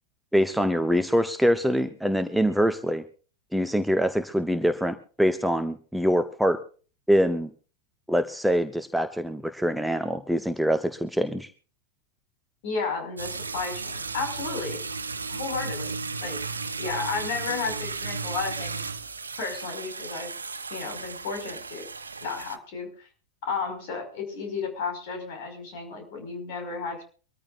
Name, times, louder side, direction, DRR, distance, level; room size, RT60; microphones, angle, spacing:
voice 1, 0.3-3.0 3.5-6.6 7.1-7.5 8.1-11.5, equal, ahead, 8 dB, 1.0 m, -24 dB
voice 2, 12.6-14.8 15.3-16.4 16.8-18.9 19.4-20.3 20.7-21.9 22.2-23.1 23.4-27.0, left 4 dB, 50° left, 5 dB, 5.6 m, -33 dB
sound 1, 13.2-22.6, right 4 dB, 75° right, 1.0 m, -34 dB
24.0 x 14.0 x 2.6 m, 0.38 s
figure-of-eight pair, 90°, 0 cm